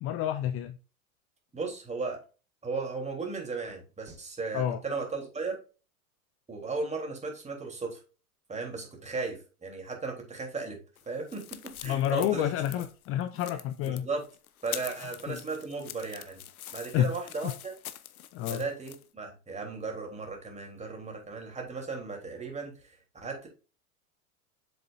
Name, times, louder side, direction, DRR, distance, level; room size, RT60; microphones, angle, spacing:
voice 1, 0.0-0.8 4.5-4.8 11.8-14.1 15.0-15.4 16.9-17.1 17.4-17.5 18.3-18.6, left 11 dB, 30° left, 0.6 m, -29 dB
voice 2, 1.5-2.2 2.6-5.6 6.5-8.0 8.5-10.8 11.1-12.5 13.8-14.2 14.6-16.4 16.7-17.7 18.5-23.5, right 4 dB, 15° right, 3.5 m, -36 dB
sound 1, 11.0-19.0, left 11 dB, 75° left, 0.9 m, -44 dB
7.7 x 6.9 x 2.6 m
hypercardioid pair, 95°, 43 cm